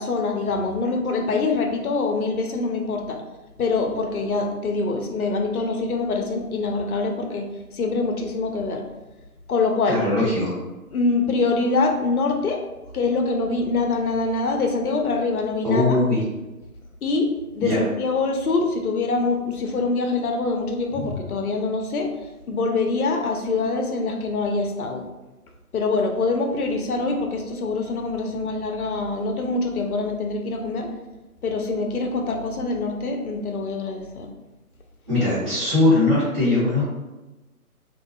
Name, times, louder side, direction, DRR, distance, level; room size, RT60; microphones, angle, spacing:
voice 1, 0.0-3.2 3.6-8.8 9.5-10.0 10.9-12.6 12.9-16.0 17.0-25.0 25.7-30.9 31.4-34.3, left 3 dB, 70° left, 3 dB, 0.6 m, -24 dB
voice 2, 9.9-10.5 15.6-16.2 17.6-17.8 35.1-36.8, left 2 dB, 25° right, -12 dB, 1.1 m, -20 dB
2.4 x 2.2 x 2.3 m, 1.1 s
figure-of-eight pair, 150°, 45 cm